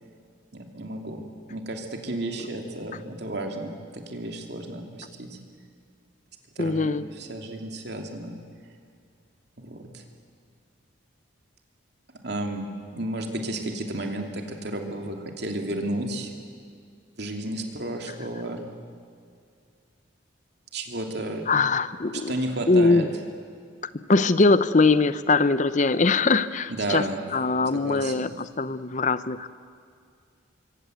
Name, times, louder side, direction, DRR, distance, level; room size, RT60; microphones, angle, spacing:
voice 1, 0.5-1.2 1.5-5.4 6.6-8.4 9.6-10.0 12.2-16.3 17.2-18.7 20.7-21.4 22.1-23.1 26.7-27.2 27.7-28.3, right 1 dB, 55° right, 3 dB, 2.9 m, -32 dB
voice 2, 6.6-7.1 21.5-22.3 22.7-23.1 23.9-29.5, left 3 dB, 40° left, 14 dB, 0.7 m, -22 dB
25.5 x 24.5 x 8.1 m, 2.3 s
head